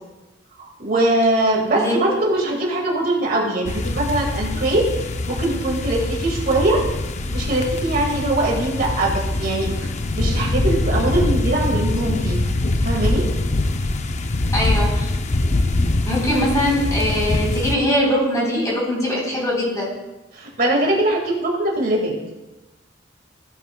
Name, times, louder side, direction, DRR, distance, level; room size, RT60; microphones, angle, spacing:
voice 1, 0.8-4.9 5.3-6.8 7.3-9.7 10.2-12.4 12.8-13.3 20.3-22.2, right 1 dB, 50° right, -1 dB, 1.9 m, -21 dB
sound 1, 3.6-17.8, left 2 dB, 40° left, 0.5 m, -23 dB
voice 2, 14.5-15.1 16.1-19.9, equal, 20° left, -4 dB, 3.7 m, -21 dB
15.5 x 9.1 x 2.2 m, 1.0 s
head